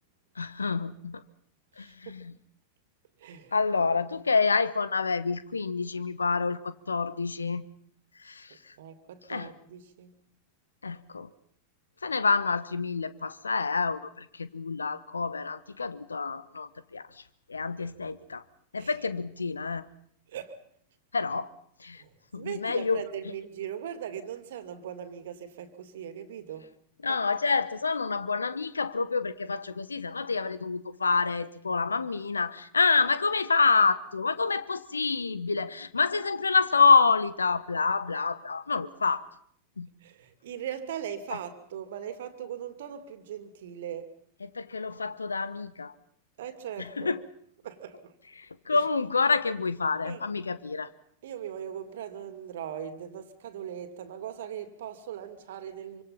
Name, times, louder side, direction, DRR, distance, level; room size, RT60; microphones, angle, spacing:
voice 1, 0.4-1.2 1.8-2.3 3.5-7.6 8.2-8.7 9.3-9.5 10.8-11.3 12.0-17.2 17.5-18.4 18.7-19.8 21.1-21.5 21.8-22.0 22.3-23.0 27.0-39.3 39.8-39.9 41.3-41.4 44.4-45.9 46.8-47.2 48.4-50.9, left 4 dB, 75° left, 1.2 m, -27 dB
voice 2, 1.8-2.2 3.2-3.5 8.8-10.1 18.8-18.9 20.3-20.6 22.0-26.7 27.1-27.2 40.0-44.1 46.4-47.2 47.6-48.1 48.7-48.8 50.0-50.2 51.2-56.0, right 9 dB, 60° right, 2.5 m, -39 dB
26.5 x 25.5 x 5.7 m
figure-of-eight pair, 90°, 0 cm